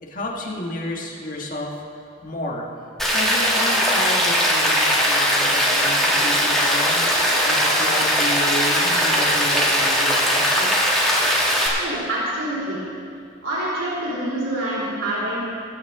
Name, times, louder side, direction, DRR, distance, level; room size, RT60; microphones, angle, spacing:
voice 1, 0.0-2.6 3.1-7.0 7.4-10.7, left 1 dB, 45° left, -1 dB, 1.6 m, -31 dB
Rain, 3.0-11.7, equal, ahead, 1.8 m, -19 dB
voice 2, 11.8-12.8 13.4-15.4, right 1 dB, 90° right, -7 dB, 3.2 m, -26 dB
21.0 x 9.0 x 3.6 m, 2.4 s
head